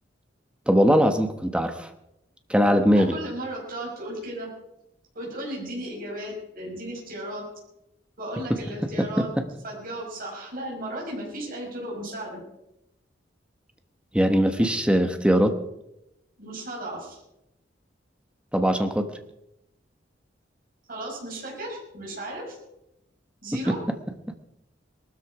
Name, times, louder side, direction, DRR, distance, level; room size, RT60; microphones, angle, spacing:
voice 1, 0.7-1.9 2.5-3.2 9.0-9.3 14.1-15.6 18.5-19.1 23.7-23.8, equal, 5° right, 7 dB, 1.2 m, -21 dB
voice 2, 2.9-4.5 5.1-7.5 8.2-9.3 9.6-12.4 16.4-17.2 20.9-22.6 23.4-23.8, right 1 dB, 50° right, -2 dB, 5.7 m, -35 dB
19.5 x 13.0 x 4.9 m, 0.86 s
head